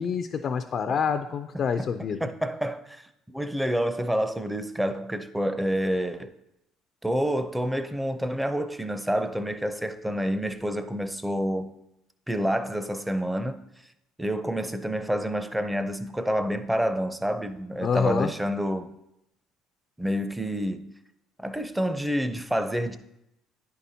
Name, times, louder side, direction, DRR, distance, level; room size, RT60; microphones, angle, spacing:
voice 1, 0.0-2.3 17.8-18.3, left 6 dB, 50° left, 0.4 m, -27 dB
voice 2, 2.2-3.1 3.3-6.3 7.0-11.7 12.3-13.6 14.2-18.9 20.0-20.9 21.4-23.0, equal, 5° right, 0.5 m, -28 dB
9.8 x 5.6 x 2.7 m
supercardioid pair, 85°, 0 cm